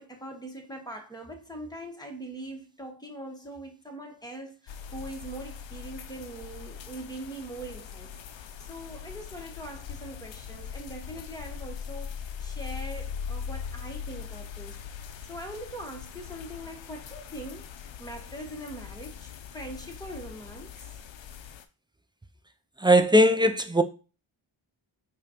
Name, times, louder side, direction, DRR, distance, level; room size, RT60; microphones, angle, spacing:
voice 1, 0.0-14.8 15.3-17.7 18.0-20.7, right 1 dB, 10° left, 1.2 m, -42 dB
sound 1, 4.7-21.6, left 7 dB, 65° left, 0.6 m, -41 dB
voice 2, 22.8-23.8, equal, 10° right, 0.4 m, -19 dB
4.9 x 2.4 x 2.9 m
cardioid pair, 45°, 50 cm